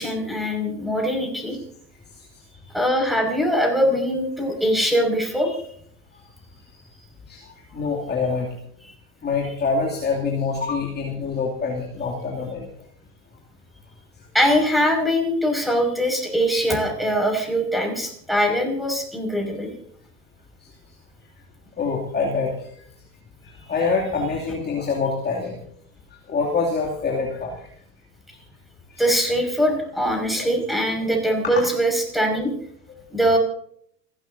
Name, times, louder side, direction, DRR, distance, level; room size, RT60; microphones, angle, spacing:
voice 1, 0.0-1.6 2.7-5.6 14.3-19.7 29.0-32.5 33.1-33.4, equal, ahead, 1 dB, 5.8 m, -22 dB
voice 2, 7.3-8.5 9.2-12.7 20.6-20.7 21.8-22.8 23.4-25.6 26.3-27.7 28.9-29.0 30.4-30.5 31.4-31.6, left 4 dB, 20° left, -2 dB, 2.7 m, -26 dB
29.5 x 12.5 x 2.7 m, 0.65 s
hypercardioid pair, 90°, 48 cm